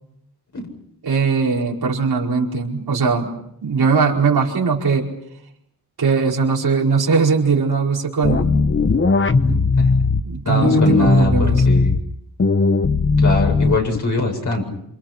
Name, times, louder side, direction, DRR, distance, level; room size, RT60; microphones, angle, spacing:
voice 1, 1.0-3.3 3.6-5.1 6.0-8.5 10.2-11.6, right 5 dB, 80° right, -2 dB, 5.0 m, -19 dB
sound 1, 8.2-10.2 10.6-12.0 12.4-14.0, left 4 dB, 35° left, 1.0 m, -17 dB
voice 2, 9.3-9.9 10.5-12.0 13.2-14.6, left 2 dB, 50° left, 1 dB, 7.9 m, -22 dB
28.5 x 27.5 x 6.0 m, 0.77 s
wide cardioid pair, 110°, 37 cm